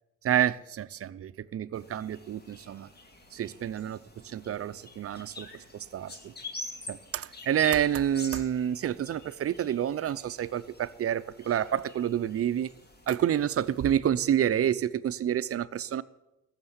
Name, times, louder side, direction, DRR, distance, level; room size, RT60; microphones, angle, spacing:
voice 1, 0.2-2.9 3.3-6.3 6.9-12.7 13.1-16.0, right 10 dB, 50° right, 0.7 m, -29 dB
sound 1, 1.7-14.0, left 2 dB, 35° left, 2.4 m, -46 dB
14.5 x 7.4 x 9.6 m
cardioid pair, 90°, 30 cm